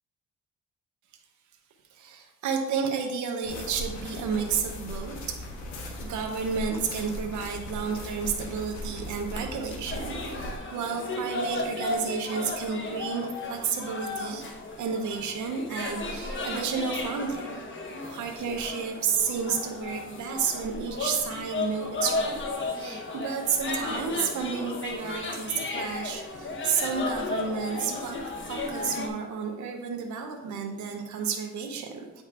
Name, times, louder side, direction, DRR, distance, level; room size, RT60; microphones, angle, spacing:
voice 1, 1.9-5.4 6.0-14.5 14.8-17.5 18.1-22.4 22.7-28.2 28.5-32.2, right 6 dB, 75° right, 3 dB, 0.9 m, -31 dB
sound 1, 3.4-10.6, left 1 dB, 75° left, 1.3 m, -38 dB
sound 2, 9.9-29.1, left 3 dB, 40° left, 1.1 m, -34 dB
8.4 x 5.1 x 2.5 m, 1.1 s
cardioid pair, 90°, 30 cm